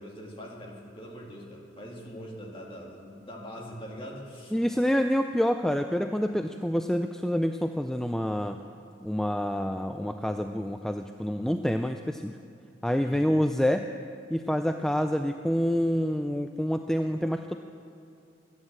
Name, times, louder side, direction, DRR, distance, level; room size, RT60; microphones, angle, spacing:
voice 1, 0.0-4.6 13.0-13.4, equal, 30° left, -1 dB, 2.2 m, -43 dB
voice 2, 4.5-8.6 9.0-12.3 12.8-13.9 14.3-17.6, equal, 5° left, 6 dB, 0.3 m, -27 dB
13.0 x 9.7 x 7.6 m, 2.6 s
head